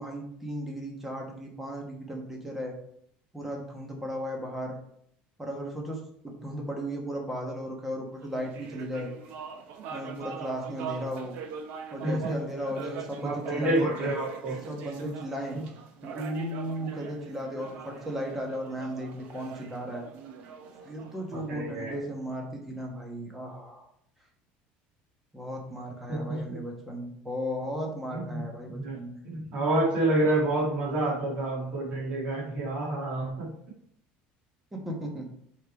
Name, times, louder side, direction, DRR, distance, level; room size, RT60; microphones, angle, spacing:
voice 1, 0.0-2.7 3.3-4.8 5.4-9.1 9.9-11.3 11.9-14.1 14.7-15.6 16.0-20.0 20.8-23.9 25.3-29.2 34.7-35.3, equal, 5° right, 0 dB, 1.2 m, -35 dB
sound 1, 8.2-21.9, right 6 dB, 50° right, 0.8 m, -42 dB
voice 2, 12.0-12.4 13.2-14.6 15.5-15.6 21.3-21.9 26.1-26.6 28.1-28.4 28.7-29.0 29.2-33.5, right 2 dB, 35° right, -4 dB, 2.2 m, -28 dB
6.3 x 3.9 x 4.6 m, 0.69 s
cardioid pair, 180°, 4 cm